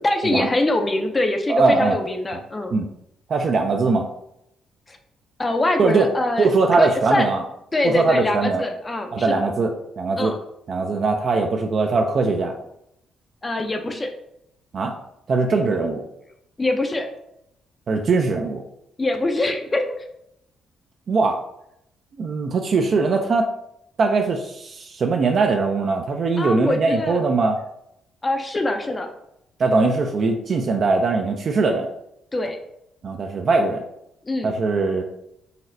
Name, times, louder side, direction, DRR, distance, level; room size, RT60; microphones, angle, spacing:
voice 1, 0.0-2.7 4.9-5.0 5.4-7.3 7.7-9.4 10.2-10.4 13.4-14.1 16.6-17.1 19.0-20.0 26.4-27.2 28.2-29.1 32.3-32.6 34.3-34.5, left 2 dB, 25° left, 5 dB, 0.4 m, -24 dB
voice 2, 1.5-2.0 2.7-2.9 3.3-4.1 5.8-6.1 6.4-7.4 7.8-8.6 9.1-10.3 10.7-12.5 14.7-14.9 15.3-16.0 17.9-18.6 21.1-21.4 22.2-23.5 24.0-27.6 29.6-31.9 33.0-33.8 34.4-35.0, right 3 dB, 50° right, 3 dB, 0.3 m, -21 dB
4.0 x 2.0 x 2.6 m, 0.78 s
cardioid pair, 90°, 0 cm